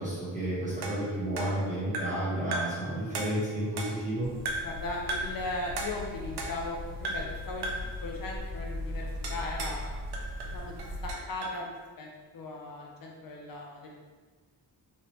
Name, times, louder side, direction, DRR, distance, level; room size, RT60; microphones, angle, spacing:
voice 1, 0.0-4.3, right 1 dB, 20° right, -9 dB, 1.5 m, -31 dB
sound 1, 0.8-2.3 2.5-2.9 3.1-4.1 4.5-4.8 5.1-5.4 5.8-6.8 7.0-7.4 7.6-8.0 9.2-9.8 10.1-11.6, right 2 dB, 70° right, 0.6 m, -36 dB
sound 2, 4.2-11.1, left 2 dB, 40° right, 1.3 m, -39 dB
voice 2, 4.6-9.9 10.4-12.1 12.3-13.9, left 2 dB, 60° left, -1 dB, 0.6 m, -38 dB
3.2 x 2.8 x 3.0 m, 1.4 s
wide cardioid pair, 105°, 40 cm